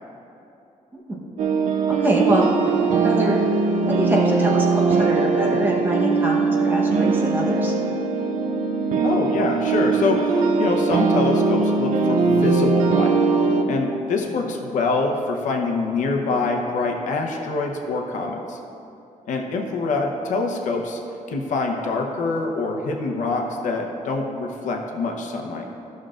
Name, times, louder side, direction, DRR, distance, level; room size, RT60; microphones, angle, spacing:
sound 1, 1.4-13.6, right 4 dB, 70° right, 0.6 m, -20 dB
voice 1, 1.9-2.7 3.0-3.4 3.8-7.7 14.3-14.4, right 1 dB, 15° right, -3 dB, 1.0 m, -25 dB
voice 2, 9.0-13.2 13.7-18.6 19.3-21.0 21.3-25.7, left 3 dB, 70° left, 2 dB, 0.8 m, -25 dB
13.5 x 6.3 x 2.5 m, 2.8 s
cardioid pair, 170°, 13 cm